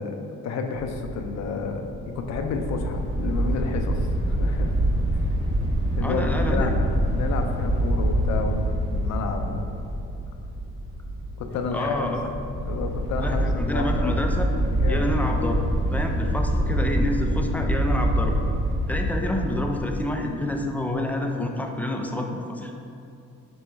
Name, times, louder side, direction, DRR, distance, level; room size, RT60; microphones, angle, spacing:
voice 1, 0.0-4.8 6.0-6.8 7.1-9.7 11.4-12.1 12.7-14.3 14.7-15.1, left 4 dB, 65° left, 4 dB, 0.5 m, -31 dB
sound 1, 0.7-20.1, right 1 dB, 40° right, 1.1 m, -26 dB
voice 2, 6.0-6.7 11.7-12.3 13.2-14.5 14.9-15.6 15.9-18.4 18.9-22.7, left 1 dB, 5° left, 2 dB, 0.3 m, -28 dB
3.5 x 3.0 x 4.4 m, 2.6 s
cardioid pair, 90°, 30 cm